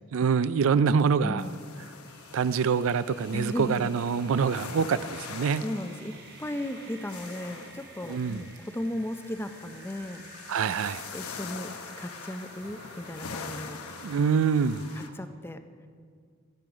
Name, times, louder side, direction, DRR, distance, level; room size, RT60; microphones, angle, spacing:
voice 1, 0.1-1.5 2.3-5.6 8.1-8.4 10.5-11.0 14.0-14.8, right 6 dB, 65° right, 15 dB, 0.4 m, -25 dB
voice 2, 1.2-1.6 3.3-3.9 5.6-6.1 6.4-10.2 11.1-11.7 12.0-13.8 15.2-15.6, left 1 dB, 10° left, 9 dB, 0.5 m, -35 dB
sound 1, 1.4-15.1, left 5 dB, 85° left, 0.9 m, -44 dB
sound 2, 1.7-15.1, right 4 dB, 50° right, 1.6 m, -51 dB
16.5 x 11.0 x 4.9 m, 2.1 s
head